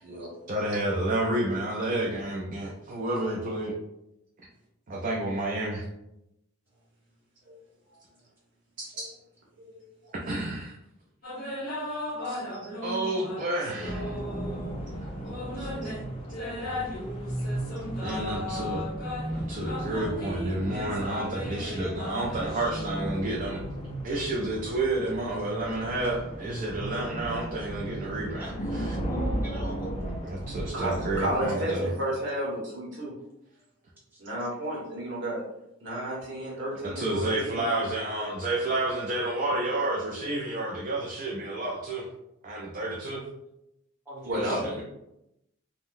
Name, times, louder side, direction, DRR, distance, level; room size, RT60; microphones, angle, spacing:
voice 1, 0.5-3.7 4.9-5.8 8.8-9.1 10.1-10.7 12.8-14.2 15.6-15.7 16.6-16.7 18.0-18.8 19.3-23.6 24.0-29.0 30.2-31.9 36.8-42.1 42.4-43.2 44.4-44.8, right 1 dB, 40° right, -3 dB, 0.4 m, -30 dB
voice 2, 9.5-10.1 12.5-12.8 14.3-14.4 15.0-15.4 15.8-15.9 30.7-33.1 34.2-35.4 35.8-37.7 44.2-44.6, right 1 dB, 60° right, -4 dB, 1.0 m, -32 dB
sound 1, 11.2-14.7 15.2-23.8, left 1 dB, 50° left, 1.2 m, -37 dB
sound 2, 13.8-31.4, right 1 dB, 30° left, 0.5 m, -35 dB
voice 3, 28.4-30.2 34.1-34.2 44.0-44.8, right 1 dB, 10° right, -7 dB, 1.1 m, -42 dB
3.6 x 2.1 x 2.6 m, 0.85 s
head